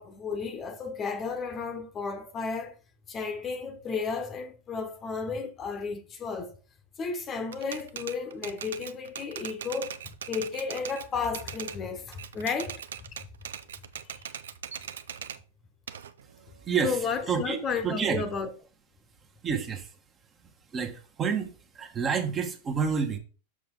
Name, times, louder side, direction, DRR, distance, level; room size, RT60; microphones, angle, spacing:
voice 1, 0.0-2.8 3.1-6.6 7.0-9.9 10.3-13.1 14.1-14.3 16.8-18.5, left 5 dB, 25° left, 1.1 m, -33 dB
Typewriter, 7.5-11.8 12.1-15.4 15.9-17.5, right 8 dB, 65° right, 0.5 m, -40 dB
voice 2, 16.6-17.0 17.3-18.2 19.4-19.9 20.7-23.2, right 6 dB, 25° right, 1.3 m, -29 dB
6.9 x 6.2 x 3.7 m
figure-of-eight pair, 90°, 0 cm